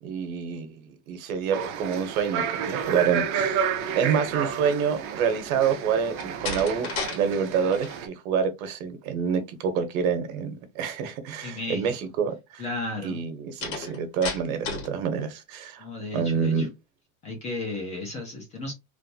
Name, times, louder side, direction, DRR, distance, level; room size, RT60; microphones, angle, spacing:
voice 1, 0.0-3.6 3.9-6.9 7.2-12.6 13.0-15.8 16.1-16.7, right 6 dB, 75° right, 1.1 m, -27 dB
sound 1, 1.5-8.1, right 7 dB, 35° right, 0.5 m, -31 dB
Slam, 6.1-7.2 7.5-8.0 13.6-14.9, left 4 dB, 55° left, 1.8 m, -33 dB
voice 2, 11.4-11.9 12.6-13.2 15.8-16.7 17.2-18.7, left 2 dB, 15° left, 0.4 m, -34 dB
3.3 x 2.5 x 2.7 m
supercardioid pair, 170°, 43 cm